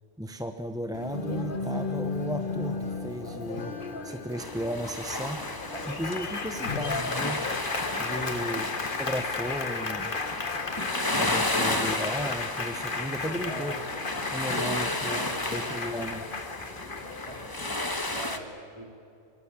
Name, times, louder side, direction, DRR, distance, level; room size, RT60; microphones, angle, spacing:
voice 1, 0.2-3.8 4.0-5.4 5.9-7.4 8.0-8.6 8.9-10.2 10.8-13.8 14.3-15.2 15.5-16.3, equal, 5° right, 7 dB, 0.8 m, -35 dB
Applause, 0.9-17.9, left 4 dB, 45° left, 1.6 m, -34 dB
sound 1, 4.4-18.4, left 1 dB, 15° left, 1.5 m, -33 dB
voice 2, 8.1-8.5 13.2-13.8 14.5-15.7 17.1-17.4 17.8-18.9, right 1 dB, 20° right, 3 dB, 3.3 m, -41 dB
24.5 x 24.0 x 8.8 m, 2.6 s
omnidirectional pair, 1.3 m